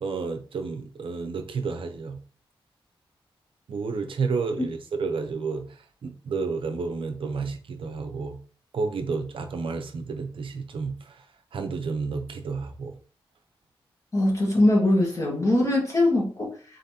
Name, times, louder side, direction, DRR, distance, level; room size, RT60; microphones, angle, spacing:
voice 1, 0.0-2.2 3.7-5.6 6.0-8.4 8.7-11.2 11.5-12.9, right 4 dB, 70° right, 5 dB, 0.6 m, -31 dB
voice 2, 14.1-16.5, left 1 dB, 35° left, -2 dB, 1.4 m, -21 dB
3.9 x 3.9 x 2.8 m, 0.40 s
wide cardioid pair, 135°, 9 cm